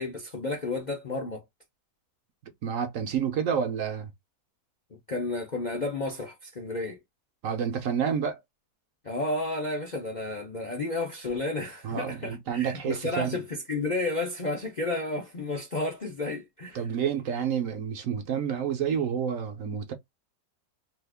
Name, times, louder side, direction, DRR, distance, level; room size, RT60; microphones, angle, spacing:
voice 1, 0.0-1.4 5.1-7.0 9.0-16.8, left 2 dB, 50° left, 0.5 m, -32 dB
voice 2, 2.6-4.1 7.4-8.4 11.8-13.4 16.7-19.9, right 7 dB, 65° right, 1.0 m, -29 dB
2.8 x 2.4 x 3.4 m
omnidirectional pair, 1.6 m